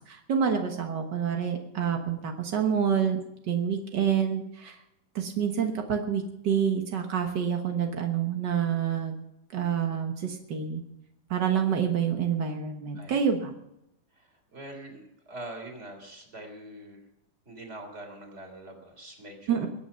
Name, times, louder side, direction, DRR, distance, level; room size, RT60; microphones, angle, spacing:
voice 1, 0.1-4.8 5.1-9.1 9.5-10.8 11.3-13.5 19.5-19.7, right 7 dB, 75° right, 3 dB, 1.0 m, -27 dB
voice 2, 14.1-17.0 17.4-19.7, right 1 dB, 20° right, 4 dB, 3.3 m, -44 dB
23.0 x 8.5 x 5.6 m, 0.84 s
omnidirectional pair, 3.9 m